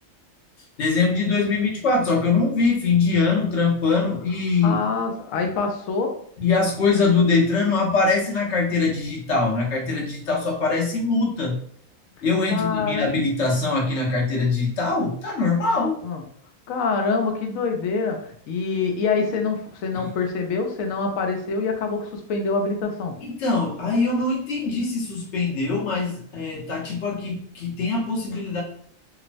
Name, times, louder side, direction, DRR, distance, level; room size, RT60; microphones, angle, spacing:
voice 1, 0.8-4.8 6.4-11.6 12.2-16.0 20.0-20.1 23.2-28.6, left 4 dB, 60° left, -1 dB, 1.0 m, -22 dB
voice 2, 4.6-6.1 12.5-13.1 16.0-16.2 16.7-23.1, left 4 dB, 85° left, 3 dB, 1.0 m, -25 dB
3.0 x 2.0 x 2.5 m, 0.62 s
omnidirectional pair, 1.4 m